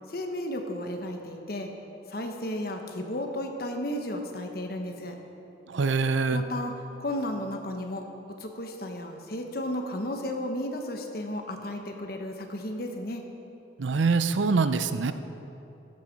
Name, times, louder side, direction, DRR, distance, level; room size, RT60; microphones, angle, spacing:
voice 1, 0.1-1.7 2.1-5.2 6.3-6.7 7.0-8.1 8.4-13.2, left 1 dB, 50° left, 4 dB, 1.1 m, -33 dB
voice 2, 5.7-6.4 13.8-15.1, right 4 dB, 80° right, 11 dB, 0.5 m, -24 dB
14.5 x 7.4 x 5.3 m, 2.9 s
head